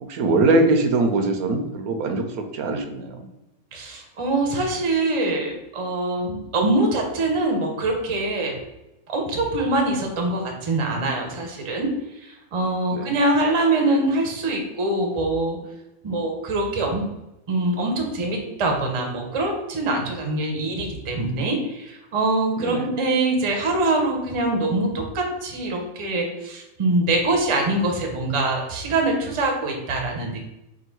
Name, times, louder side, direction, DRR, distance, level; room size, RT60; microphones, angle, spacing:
voice 1, 0.0-3.3 12.9-13.1 22.6-22.9, right 2 dB, 85° right, 6 dB, 1.0 m, -22 dB
voice 2, 3.7-8.6 9.1-11.9 12.2-15.6 16.0-17.0 17.5-30.4, right 2 dB, 35° right, 2 dB, 0.5 m, -24 dB
3.7 x 2.3 x 4.5 m, 0.91 s
omnidirectional pair, 1.5 m